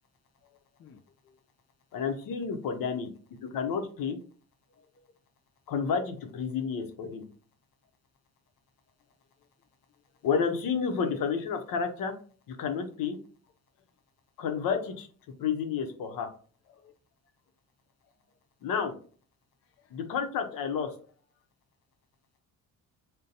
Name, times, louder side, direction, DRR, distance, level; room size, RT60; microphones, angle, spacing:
voice 1, 0.8-1.4 4.7-5.1 11.0-11.2 16.7-16.9 19.8-19.9, left 6 dB, 40° left, 6 dB, 0.4 m, -56 dB
voice 2, 1.9-3.1 3.4-4.2 5.7-7.2 10.2-12.1 12.5-13.2 14.4-15.1 15.4-16.3 18.6-18.9 19.9-20.9, left 6 dB, 75° left, 5 dB, 0.8 m, -30 dB
3.8 x 2.2 x 2.7 m, 0.42 s
cardioid pair, 90°, 35 cm